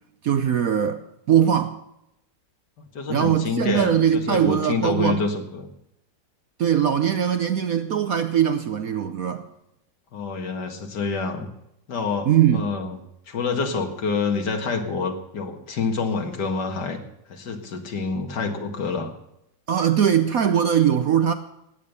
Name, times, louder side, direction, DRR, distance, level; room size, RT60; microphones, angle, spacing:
voice 1, 0.2-1.0 1.3-1.8 3.1-5.2 6.6-9.4 12.3-12.6 19.7-21.3, right 9 dB, 60° right, 1.0 m, -21 dB
voice 2, 2.9-5.7 10.1-11.5 11.9-13.0 13.3-17.0 17.3-19.1, left 4 dB, 65° left, 2.4 m, -27 dB
17.0 x 9.0 x 6.8 m
omnidirectional pair, 2.0 m